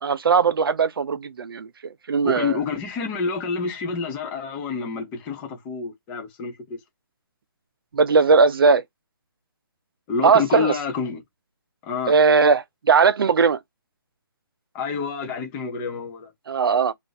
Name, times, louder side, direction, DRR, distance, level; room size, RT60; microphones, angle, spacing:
voice 1, 0.0-2.6 7.9-8.8 10.2-10.7 12.1-13.6 16.5-16.9, right 5 dB, 75° right, 0.5 m, -19 dB
voice 2, 2.2-6.8 10.1-11.2 11.8-12.1 14.7-16.3, left 5 dB, 10° left, 0.6 m, -28 dB
2.5 x 2.1 x 3.9 m
hypercardioid pair, 170°, 12 cm